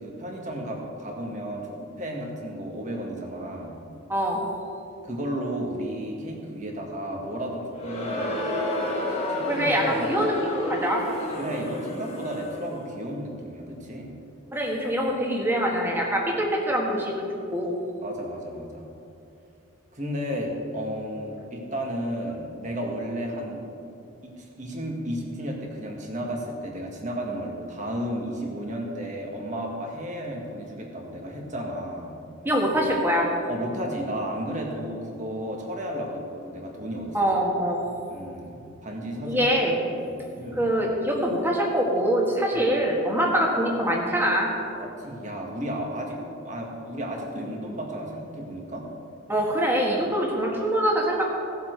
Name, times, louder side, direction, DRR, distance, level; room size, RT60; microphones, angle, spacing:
voice 1, 0.0-3.8 5.0-8.5 9.3-10.1 11.4-14.1 18.0-18.9 19.9-23.7 24.2-32.2 33.5-37.2 38.1-39.6 40.0-40.6 42.5-42.6 44.8-46.2 46.4-48.8, equal, 35° right, 0 dB, 1.7 m, -33 dB
voice 2, 4.1-4.4 9.4-11.0 14.5-17.2 17.5-17.7 32.4-33.3 37.1-37.8 39.3-39.7 40.6-44.5 49.3-51.3, equal, 10° right, -1 dB, 1.6 m, -24 dB
Crowd, 7.7-12.7, left 1 dB, 30° left, 1.6 m, -30 dB
17.0 x 7.4 x 4.6 m, 2.7 s
head